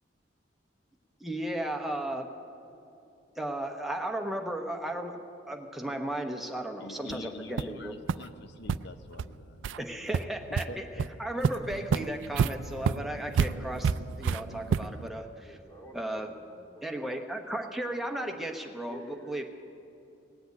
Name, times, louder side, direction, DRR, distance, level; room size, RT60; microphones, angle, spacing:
voice 1, 1.2-2.3 3.4-5.2 5.5-7.9 9.8-10.8 11.2-13.9 14.2-15.5 15.9-16.3 16.8-19.4, right 1 dB, ahead, 3 dB, 1.0 m, -35 dB
voice 2, 6.8-10.3 10.7-11.1, left 2 dB, 60° left, 9 dB, 0.7 m, -46 dB
sound 1, 7.1-7.2 7.6-7.7 8.1-8.2 8.6-8.8 9.2-9.3 9.6-9.8 10.1-10.6 11.0-11.1 11.4-15.1, right 6 dB, 80° right, 0.3 m, -29 dB
voice 3, 15.4-17.6 18.9-19.4, left 1 dB, 20° left, -1 dB, 2.2 m, -50 dB
18.5 x 7.9 x 9.3 m, 2.8 s
head